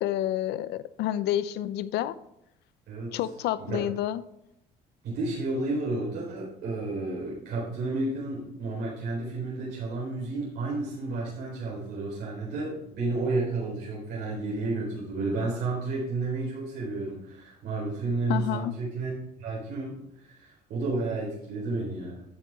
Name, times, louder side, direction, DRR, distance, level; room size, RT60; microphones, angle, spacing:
voice 1, 0.0-2.1 3.1-4.2 18.3-18.7, left 12 dB, 80° left, 15 dB, 0.6 m, -29 dB
voice 2, 2.9-3.2 3.6-3.8 5.0-19.1 19.4-20.0 20.2-22.2, right 3 dB, 80° right, -5 dB, 4.1 m, -31 dB
14.5 x 5.5 x 3.6 m, 0.82 s
cardioid pair, 110°, 17 cm